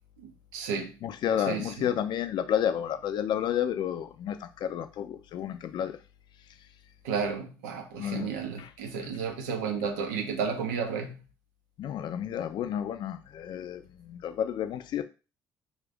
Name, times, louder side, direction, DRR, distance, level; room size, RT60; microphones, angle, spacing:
voice 1, 0.2-1.0 1.5-1.7 7.0-11.2, right 6 dB, 90° right, 0.5 m, -32 dB
voice 2, 1.0-6.0 7.9-8.7 9.0-9.1 11.8-15.0, left 9 dB, 60° left, 0.4 m, -31 dB
2.5 x 2.4 x 3.4 m
hypercardioid pair, 60°, 9 cm